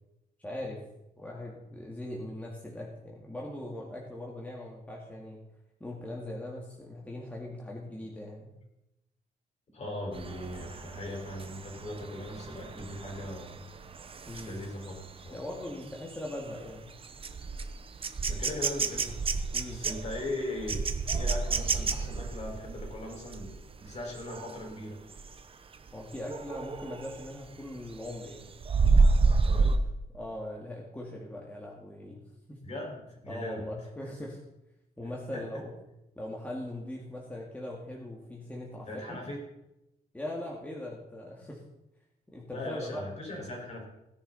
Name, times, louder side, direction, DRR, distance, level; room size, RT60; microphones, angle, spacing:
voice 1, 0.4-0.8 1.2-5.4 5.8-8.5 14.3-14.6 15.3-16.9 19.5-19.8 25.9-28.6 30.1-32.2 32.5-32.6 33.3-34.4 35.0-35.7 36.2-39.2 40.1-41.6 42.3-43.0, left 1 dB, 10° left, -2 dB, 2.2 m, -40 dB
voice 2, 9.7-13.7 14.3-15.4 18.3-19.1 19.7-25.0 29.4-29.8 32.6-33.7 35.3-35.4 38.9-39.5 42.5-43.8, left 1 dB, 45° left, 0 dB, 5.0 m, -39 dB
sound 1, 10.1-24.7 25.1-25.4 25.7-27.4 27.8-29.8, right 4 dB, 35° right, 0.9 m, -30 dB
17.0 x 11.0 x 4.2 m, 0.89 s
wide cardioid pair, 140°, 16 cm